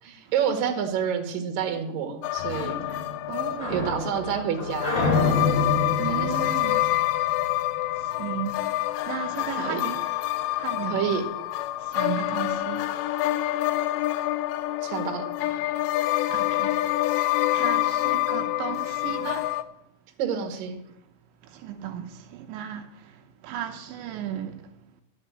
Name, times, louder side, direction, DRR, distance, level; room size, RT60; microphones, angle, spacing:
voice 1, 0.0-2.8 3.7-5.0 6.1-6.5 9.6-9.8 10.9-11.2 14.8-15.3 20.2-20.8, right 8 dB, 60° right, 2.9 m, -28 dB
sound 1, 2.2-19.6, left 16 dB, 80° left, 2.8 m, -27 dB
sound 2, 2.4-7.8, left 3 dB, 50° left, 0.4 m, -28 dB
voice 2, 2.9-3.9 6.0-6.9 7.9-8.6 9.1-10.0 10.3-11.1 11.8-12.9 15.6-15.7 16.3-16.8 17.5-19.5 21.4-24.7, right 9 dB, 85° right, 3.2 m, -35 dB
12.0 x 6.6 x 8.3 m
omnidirectional pair, 5.2 m